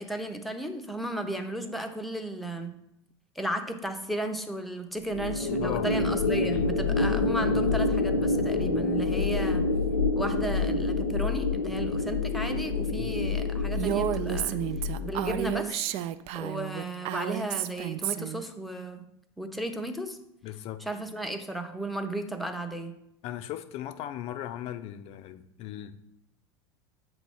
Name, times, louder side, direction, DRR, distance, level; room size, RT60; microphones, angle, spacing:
voice 1, 0.0-2.7 3.4-9.7 10.2-14.6 15.0-15.8 16.3-19.0 19.4-20.2 20.8-23.0, right 1 dB, ahead, 6 dB, 0.7 m, -34 dB
sound 1, 5.1-15.6, left 3 dB, 90° left, 0.6 m, -27 dB
voice 2, 5.6-5.9 6.4-6.7 13.0-13.1 20.4-20.8 23.2-26.0, left 12 dB, 45° left, 10 dB, 0.5 m, -37 dB
Female speech woman speaking, 13.8-18.4, right 11 dB, 45° right, 0.4 m, -31 dB
7.7 x 3.0 x 5.5 m, 0.78 s
hypercardioid pair, 85°, 14 cm